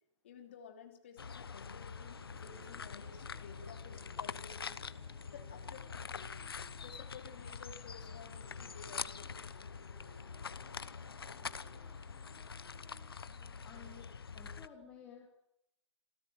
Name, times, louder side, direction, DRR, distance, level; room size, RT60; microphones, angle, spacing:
voice 1, 0.2-4.8 5.3-6.3 6.8-9.7, left 6 dB, 25° left, 5 dB, 3.1 m, -54 dB
sound 1, 1.2-14.7, left 6 dB, 50° left, 1.1 m, -45 dB
sound 2, 1.4-14.7, right 3 dB, 35° right, 7.3 m, -68 dB
sound 3, 2.0-14.0, right 5 dB, 15° right, 2.7 m, -64 dB
voice 2, 13.6-15.4, left 7 dB, 5° left, 0 dB, 1.6 m, -54 dB
27.5 x 15.0 x 9.0 m, 0.81 s
hypercardioid pair, 175°, 15 cm